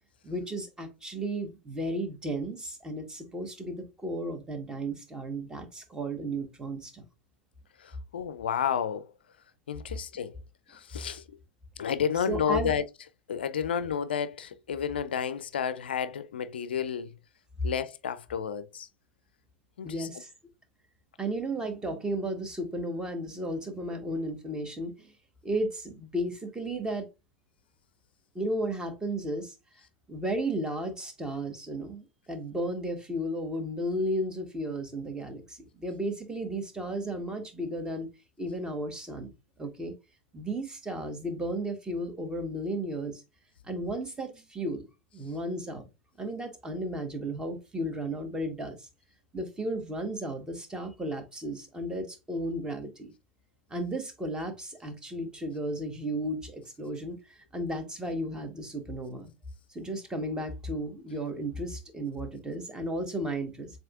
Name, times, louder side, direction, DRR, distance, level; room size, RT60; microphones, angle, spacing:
voice 1, 0.2-7.0 12.3-12.7 19.8-20.3 21.2-25.1 25.4-27.1 28.3-29.5 30.1-38.1 38.4-39.3 39.6-39.9 40.3-43.2 43.7-44.8 45.1-45.8 46.2-48.9 49.3-53.1 53.7-59.3 59.7-63.7, right 1 dB, 15° right, 1.2 m, -34 dB
voice 2, 7.8-9.1 9.7-10.3 10.7-11.2 11.8-12.8 13.3-17.1 17.6-18.9 19.8-20.1, left 8 dB, 70° left, 0.4 m, -31 dB
7.3 x 2.7 x 2.4 m
figure-of-eight pair, 90°, 6 cm